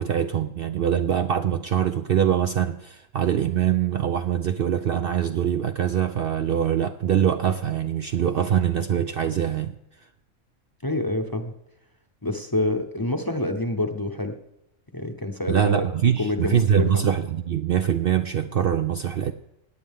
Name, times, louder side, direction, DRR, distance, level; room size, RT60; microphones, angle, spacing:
voice 1, 0.0-9.7 15.5-19.3, right 9 dB, 60° right, 0.6 m, -23 dB
voice 2, 10.8-11.5 12.2-14.4 14.9-15.9 16.2-17.0, left 1 dB, 20° left, 0.8 m, -27 dB
17.0 x 9.8 x 3.6 m
omnidirectional pair, 1.3 m